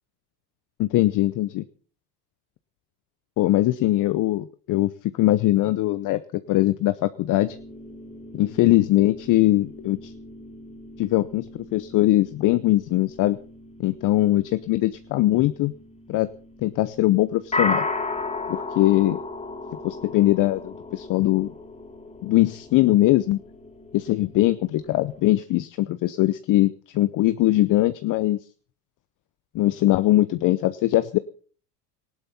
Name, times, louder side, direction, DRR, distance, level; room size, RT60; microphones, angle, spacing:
voice 1, 0.8-1.6 3.4-7.6 8.3-10.1 11.0-13.4 13.8-15.7 16.1-16.3 16.6-17.9 18.5-19.2 19.8-21.5 22.2-23.4 23.9-28.4 29.5-31.2, left 16 dB, 40° left, 14 dB, 0.8 m, -21 dB
sound 1, 7.4-25.2, left 3 dB, 15° left, 3.6 m, -36 dB
18.5 x 15.0 x 4.3 m, 0.43 s
hypercardioid pair, 95°, 47 cm